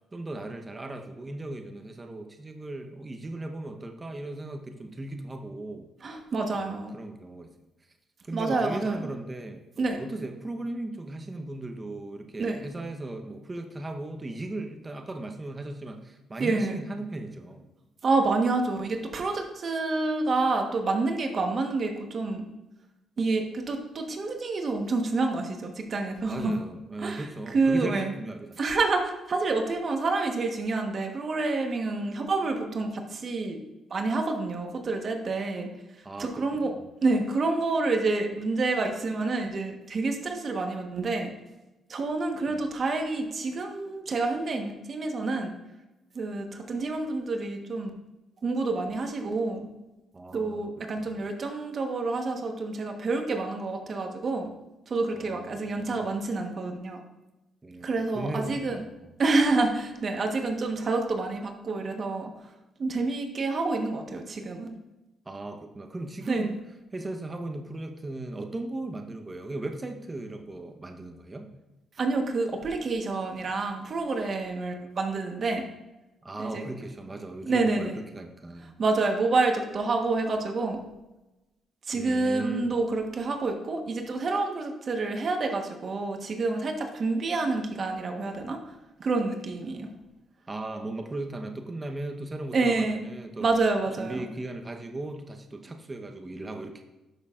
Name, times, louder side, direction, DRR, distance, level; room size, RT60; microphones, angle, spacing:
voice 1, 0.1-5.9 6.5-7.5 8.3-9.6 10.0-17.7 26.3-28.6 36.0-36.9 42.5-42.6 50.1-50.7 51.0-51.1 55.1-56.1 57.6-58.9 65.3-66.6 66.9-71.5 76.2-78.7 81.9-82.7 90.5-93.5 94.0-96.8, right 2 dB, 25° right, 4 dB, 0.9 m, -37 dB
voice 2, 6.0-7.0 8.3-9.0 9.8-10.0 12.4-12.6 16.4-16.8 18.0-22.4 23.2-26.5 27.0-28.1 28.6-33.6 33.9-35.7 36.2-36.7 37.0-41.3 41.9-45.5 46.1-47.9 48.4-49.7 50.3-54.5 54.9-57.0 57.8-58.8 59.2-62.3 62.8-64.8 66.3-66.5 72.0-75.6 76.4-76.7 77.4-77.9 78.8-80.8 81.9-88.6 89.0-89.9 92.5-93.0 93.4-94.3, right 3 dB, 45° right, 4 dB, 1.2 m, -28 dB
11.5 x 6.5 x 2.5 m, 1.0 s
cardioid pair, 90°, 0 cm